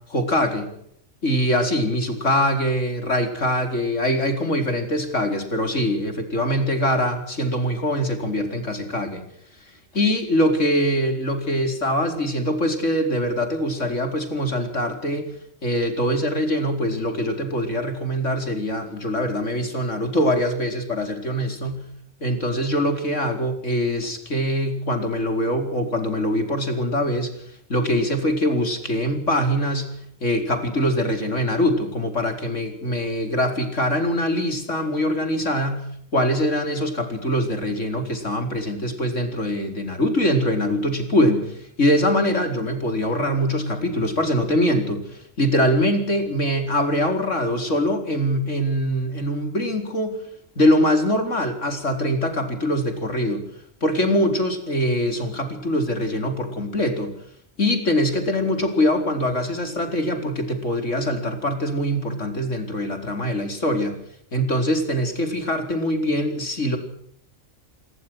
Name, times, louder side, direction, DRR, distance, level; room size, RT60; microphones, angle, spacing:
voice 1, 0.1-0.7 1.2-9.2 9.9-15.3 15.6-21.8 22.2-27.3 27.7-29.9 30.2-35.8 36.1-50.2 50.5-53.4 53.8-57.1 57.6-64.0 64.3-66.8, equal, 75° left, 6 dB, 5.0 m, -23 dB
27.0 x 21.0 x 6.3 m, 0.68 s
omnidirectional pair, 1.3 m